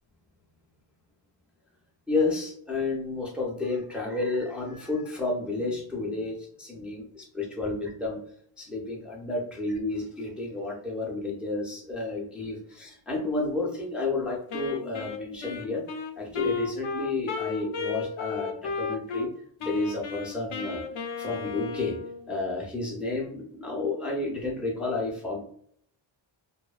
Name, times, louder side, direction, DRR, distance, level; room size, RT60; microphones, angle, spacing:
voice 1, 2.1-8.2 8.6-15.8 16.2-19.3 19.6-20.8 21.2-22.0 22.3-25.4, left 3 dB, 5° right, -2 dB, 0.3 m, -31 dB
Wind instrument woodwind instrument, 14.5-19.3 19.6-22.2, left 5 dB, 80° left, 0.6 m, -34 dB
2.5 x 2.1 x 2.3 m, 0.65 s
wide cardioid pair, 165°, 49 cm